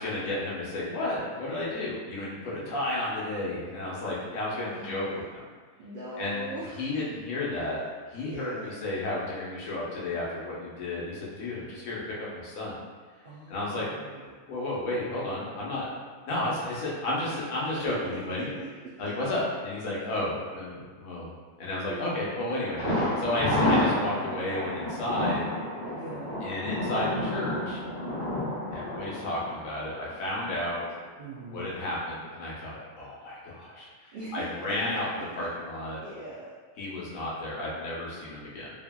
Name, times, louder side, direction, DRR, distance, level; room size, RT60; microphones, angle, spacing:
voice 1, 0.0-5.0 5.3-5.4 6.2-6.4 6.8-7.8 8.1-12.0 12.3-12.8 13.5-13.9 14.5-15.9 16.3-18.5 19.0-21.3 21.6-25.5 26.4-27.8 28.7-30.8 31.5-35.1 35.4-36.0 36.8-38.7, left 1 dB, 80° left, -6 dB, 1.2 m, -32 dB
voice 2, 2.4-2.8 4.7-5.2 5.8-6.9 8.2-8.8 13.2-14.4 17.3-17.4 17.8-17.9 18.5-18.7 19.4-19.7 21.9-22.3 25.9-26.3 31.2-31.7 34.1-34.7 36.0-36.5, right 1 dB, 65° right, -8 dB, 0.5 m, -41 dB
Thunder, 22.8-30.5 30.8-30.9 31.4-31.5, left 1 dB, 25° left, 0.8 m, -30 dB
2.8 x 2.7 x 2.2 m, 1.5 s
omnidirectional pair, 1.4 m